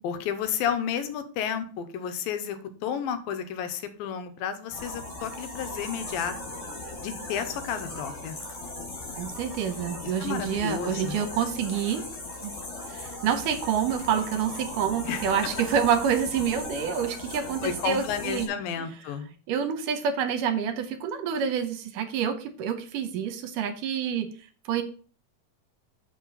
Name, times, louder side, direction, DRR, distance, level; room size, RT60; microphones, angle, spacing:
voice 1, 0.0-6.3 7.0-8.4 10.0-11.2 15.1-15.3 17.6-19.3, left 8 dB, 85° left, 9 dB, 2.6 m, -32 dB
sound 1, 4.7-18.5, left 2 dB, 45° left, 4.0 m, -38 dB
voice 2, 9.1-12.0 12.4-12.5 12.9-18.5 19.5-24.3 24.7-24.8, right 8 dB, 75° right, 9 dB, 2.2 m, -27 dB
7.4 x 5.4 x 5.4 m, 0.41 s
omnidirectional pair, 4.1 m